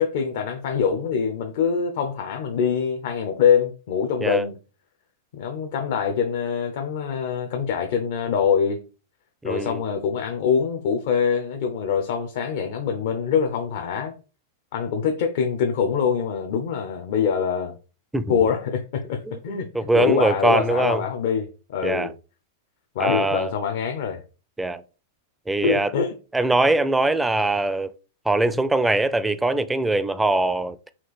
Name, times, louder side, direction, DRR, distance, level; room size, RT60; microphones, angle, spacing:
voice 1, 0.0-4.5 5.3-8.8 9.4-14.1 14.7-17.8 18.3-19.2 19.4-22.1 23.0-24.2 25.6-26.1, left 7 dB, 65° left, 0.6 m, -24 dB
voice 2, 9.4-9.8 18.1-18.4 19.3-21.0 21.8-22.1 23.0-23.5 24.6-24.8 25.5-25.9 26.3-27.9 28.3-30.9, right 2 dB, 5° right, 0.4 m, -22 dB
4.3 x 2.4 x 4.1 m
hypercardioid pair, 120°, 0 cm